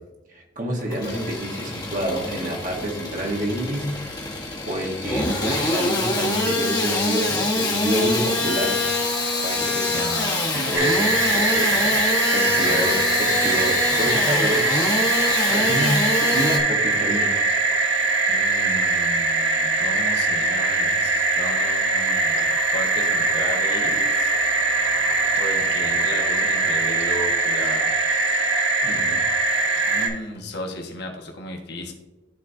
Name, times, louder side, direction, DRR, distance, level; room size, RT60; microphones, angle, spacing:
voice 1, 0.3-4.0 4.7-9.1 9.4-10.1 10.5-14.8 15.5-17.3 28.8-29.2, right 1 dB, 40° right, 0 dB, 1.1 m, -28 dB
Engine starting / Sawing, 0.8-16.6, left 2 dB, 20° left, 1.2 m, -25 dB
voice 2, 9.9-10.5 12.6-12.9 18.3-22.4 22.7-24.3 25.3-27.9 29.9-31.9, left 1 dB, 55° left, 1 dB, 1.4 m, -34 dB
sound 1, 10.7-30.1, right 3 dB, 70° right, 1.4 m, -22 dB
12.5 x 4.1 x 2.7 m, 1.1 s
head